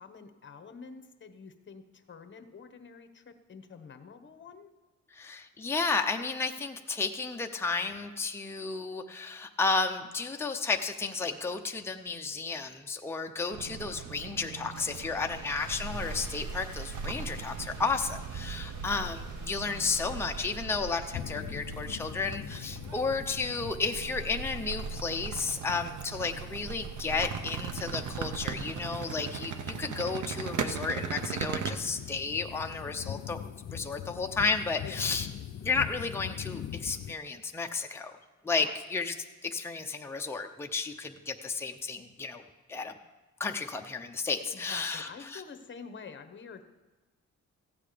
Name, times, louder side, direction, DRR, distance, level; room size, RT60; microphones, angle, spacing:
voice 1, 0.0-4.7 34.8-35.1 38.6-38.8 44.5-46.6, left 5 dB, 40° left, 10 dB, 1.0 m, -47 dB
voice 2, 5.1-33.4 33.7-35.3 35.6-38.1 38.4-39.1 39.4-42.4 42.7-42.9 43.4-45.4, left 4 dB, 10° left, 3 dB, 0.6 m, -32 dB
sound 1, 13.5-31.8, right 6 dB, 80° right, 0.8 m, -39 dB
Car / Engine starting, 14.2-21.7, equal, 50° right, 2.7 m, -49 dB
sound 2, 21.1-37.1, left 10 dB, 60° left, 0.5 m, -43 dB
15.0 x 8.7 x 5.0 m, 1.2 s
wide cardioid pair, 130°, 30 cm